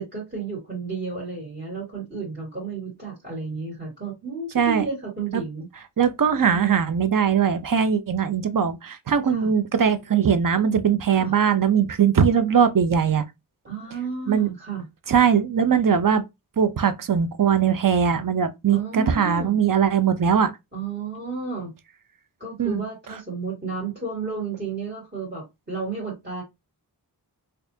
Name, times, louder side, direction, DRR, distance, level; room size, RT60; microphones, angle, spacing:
voice 1, 0.0-5.7 9.3-9.5 11.1-11.3 13.7-14.8 18.7-19.6 20.7-21.7 22.4-26.4, right 5 dB, 25° right, 2.1 m, -32 dB
voice 2, 6.0-13.3 14.3-14.5 15.1-16.2 16.6-20.5 22.6-22.8, right 7 dB, 50° right, 0.6 m, -20 dB
4.2 x 2.7 x 2.7 m
wide cardioid pair, 45°, 41 cm